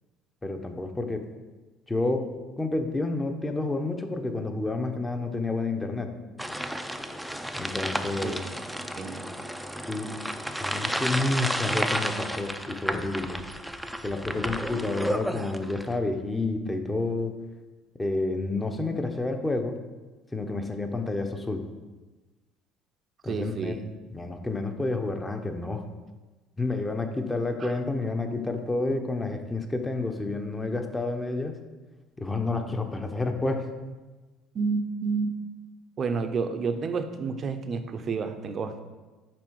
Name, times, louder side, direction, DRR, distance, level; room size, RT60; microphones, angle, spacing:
voice 1, 0.4-1.2 1.9-2.3 2.6-6.1 7.6-8.5 9.9-10.2 10.6-13.4 14.0-17.3 18.0-19.8 20.3-21.7 23.2-23.8 24.1-25.8 26.6-31.6 32.2-33.7, left 2 dB, 15° left, 5 dB, 0.8 m, -29 dB
sound 1, 6.4-16.0, equal, ahead, 0.5 m, -32 dB
voice 2, 9.0-9.3 23.2-23.8 27.6-27.7 34.5-35.4 36.0-38.8, right 5 dB, 45° right, 8 dB, 0.6 m, -30 dB
6.1 x 4.1 x 4.7 m, 1.2 s
hypercardioid pair, 70°, 0 cm